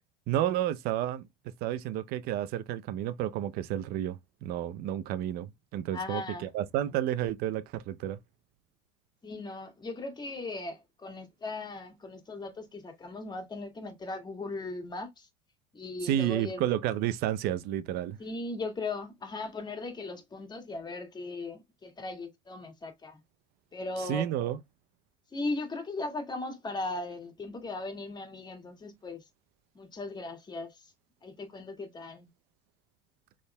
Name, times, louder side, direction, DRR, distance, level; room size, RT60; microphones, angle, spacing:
voice 1, 0.3-1.3 1.6-8.2 16.0-18.2 24.1-24.6, right 12 dB, 60° right, 0.6 m, -31 dB
voice 2, 5.9-6.5 9.2-15.3 15.7-16.6 18.2-23.2 23.7-24.3 25.3-29.3 29.7-30.9 31.2-32.3, left 2 dB, 25° left, 2.0 m, -38 dB
6.3 x 3.7 x 2.2 m
supercardioid pair, 95°, 18 cm